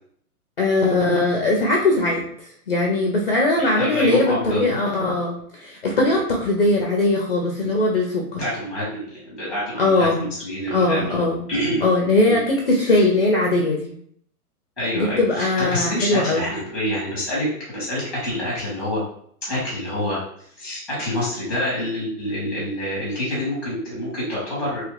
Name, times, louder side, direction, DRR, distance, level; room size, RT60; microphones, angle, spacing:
voice 1, 0.6-8.4 9.8-10.3 10.7-11.4 11.8-13.9 15.0-16.5, left 2 dB, 40° left, -1 dB, 0.4 m, -20 dB
voice 2, 3.6-4.7 8.4-11.2 11.5-11.8 12.2-12.4 12.9-13.0 14.8-19.0 19.4-20.2 20.6-24.8, left 1 dB, ahead, -7 dB, 0.9 m, -27 dB
2.9 x 2.4 x 3.2 m, 0.64 s
hypercardioid pair, 165°, 45 cm